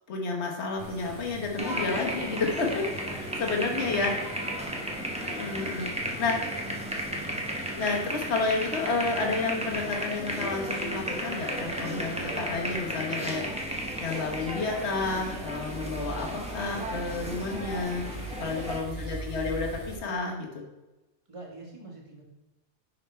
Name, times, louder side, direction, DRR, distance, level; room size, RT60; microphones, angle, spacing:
voice 1, 0.1-4.1 5.2-5.9 6.2-6.4 7.8-18.0 18.4-20.6, left 3 dB, 65° left, 1 dB, 1.4 m, -31 dB
sound 1, 0.8-20.0, right 1 dB, 75° right, 2.6 m, -43 dB
sound 2, 1.6-18.8, equal, 5° right, 0.7 m, -34 dB
voice 2, 3.4-4.3 5.8-6.8 18.5-19.1 21.3-22.2, right 1 dB, 25° right, -2 dB, 1.5 m, -47 dB
5.6 x 5.5 x 4.2 m, 1.0 s
omnidirectional pair, 1.2 m